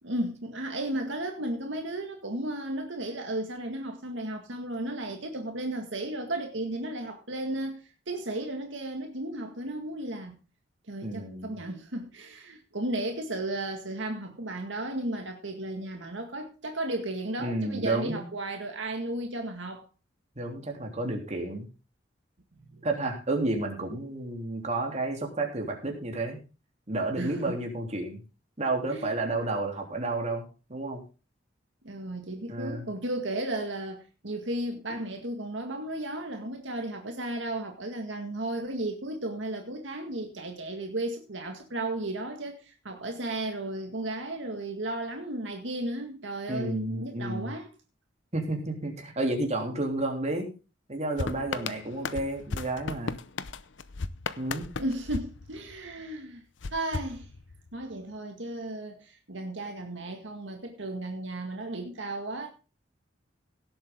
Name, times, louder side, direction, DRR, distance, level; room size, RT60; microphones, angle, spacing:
voice 1, 0.0-7.8 8.1-10.4 10.9-19.8 22.7-22.8 27.2-27.6 28.9-29.2 31.8-47.7 54.8-56.4 56.7-57.3 57.7-62.5, right 1 dB, 70° right, 2.0 m, -34 dB
voice 2, 11.0-11.5 17.4-18.2 20.3-21.7 22.8-26.4 26.9-28.2 28.6-30.4 30.7-31.0 32.5-32.9 46.5-47.5 48.3-50.5 50.9-53.2 54.4-54.7, right 2 dB, 35° right, 3.2 m, -31 dB
sound 1, 51.2-56.0 56.6-57.8, left 4 dB, 70° left, 0.8 m, -36 dB
17.5 x 8.0 x 3.8 m
head